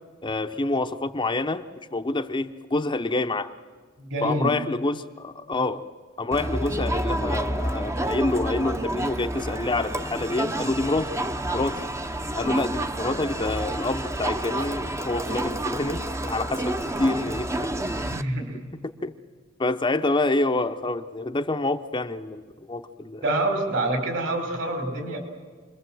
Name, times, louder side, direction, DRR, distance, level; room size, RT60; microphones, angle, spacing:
voice 1, 0.2-1.6 1.9-3.5 4.2-5.8 6.2-11.1 11.5-11.8 12.3-16.0 16.3-17.5 19.0-19.1 19.6-22.4 22.7-23.2, left 2 dB, 25° left, 7 dB, 0.8 m, -27 dB
voice 2, 4.0-4.5 18.1-18.6 23.2-25.2, right 2 dB, 65° right, 4 dB, 5.1 m, -26 dB
Crowd, 6.3-18.2, right 1 dB, 15° right, 0.8 m, -29 dB
28.5 x 21.5 x 7.8 m, 1.5 s
head